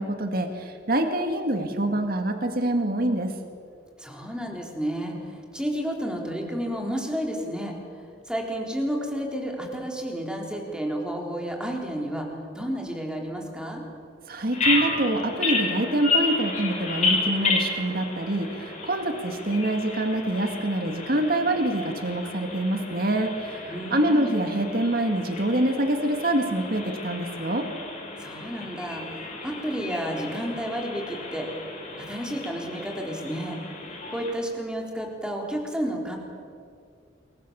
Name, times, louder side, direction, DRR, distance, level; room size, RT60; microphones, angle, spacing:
voice 1, 0.0-3.3 14.3-27.7, right 1 dB, 55° right, 5 dB, 2.1 m, -25 dB
voice 2, 4.0-12.3 12.5-13.8 23.7-24.4 28.2-31.5 32.0-33.6 34.1-36.2, equal, 5° right, 0 dB, 4.0 m, -31 dB
Bird vocalization bird call bird song, 14.5-34.3, left 3 dB, 40° left, 5.7 m, -32 dB
28.0 x 23.0 x 7.0 m, 2.3 s
head